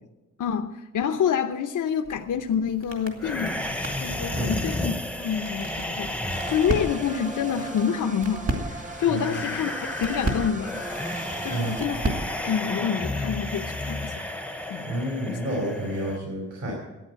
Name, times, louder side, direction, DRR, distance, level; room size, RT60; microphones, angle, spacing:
voice 1, 0.4-6.2 6.5-9.7 10.0-10.8 11.4-12.2 12.4-14.2 14.7-14.9 15.2-15.4, left 7 dB, 80° left, 6 dB, 0.8 m, -27 dB
sound 1, 2.0-12.9, right 2 dB, 50° right, 2.6 m, -35 dB
sound 2, 3.2-16.2, left 1 dB, 5° left, 0.7 m, -33 dB
sound 3, 6.3-11.8, right 2 dB, 25° right, 1.1 m, -39 dB
voice 2, 9.1-9.4 11.5-11.8 14.8-16.7, right 1 dB, 70° right, -2 dB, 4.6 m, -30 dB
13.5 x 9.4 x 6.9 m, 1.1 s
wide cardioid pair, 120°, 31 cm